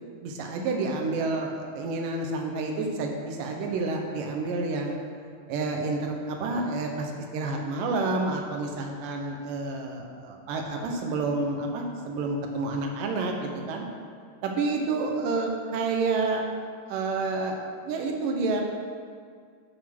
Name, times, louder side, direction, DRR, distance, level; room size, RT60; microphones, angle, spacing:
voice 1, 0.2-5.0 5.5-13.9 14.4-18.6, right 3 dB, 80° right, 2 dB, 2.7 m, -29 dB
8.5 x 7.3 x 6.0 m, 2.1 s
omnidirectional pair, 3.8 m